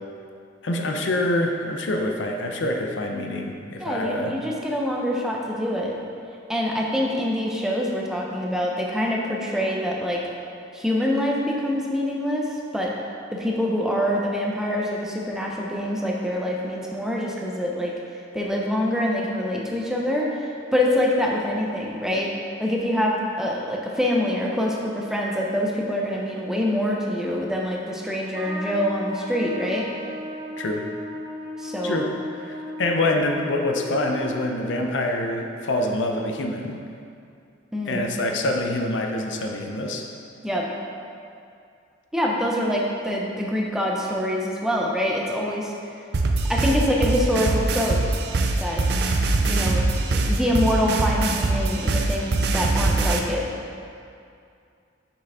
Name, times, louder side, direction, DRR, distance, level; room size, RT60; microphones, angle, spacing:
voice 1, 0.6-4.4 30.6-30.8 31.8-32.1 32.4-36.8 37.9-40.0, left 1 dB, 80° left, 2 dB, 0.6 m, -25 dB
voice 2, 3.8-6.0 6.5-10.2 10.7-12.9 13.3-17.9 18.3-22.3 22.6-29.9 31.6-32.0 37.7-38.0 40.4-40.7 42.1-45.7 46.5-48.0 48.6-48.8 49.5-49.8 50.1-53.5, left 1 dB, 5° right, -2 dB, 0.5 m, -25 dB
Trumpet, 28.3-34.8, left 1 dB, 25° right, 1.1 m, -36 dB
sound 1, 46.1-53.2, right 2 dB, 60° right, 0.5 m, -22 dB
6.3 x 5.0 x 3.5 m, 2.4 s
head